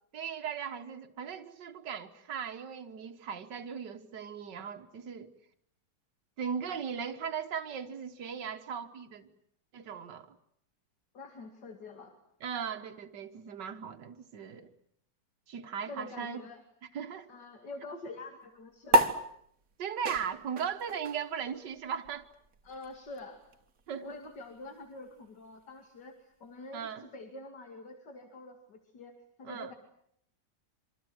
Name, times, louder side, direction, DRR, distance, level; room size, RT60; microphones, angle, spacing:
voice 1, 0.1-5.3 6.4-9.3 9.7-10.4 12.4-14.7 15.5-16.4 16.9-17.3 19.8-22.3 23.9-24.2 26.7-27.1 29.4-29.7, right 7 dB, 80° right, 2.0 m, -38 dB
voice 2, 11.1-12.2 14.5-14.6 15.9-16.6 17.3-19.0 22.6-23.4 24.0-29.7, left 2 dB, 75° left, 3.1 m, -46 dB
sound 1, 18.9-25.7, equal, 50° right, 2.0 m, -33 dB
26.5 x 25.5 x 7.9 m
omnidirectional pair, 1.8 m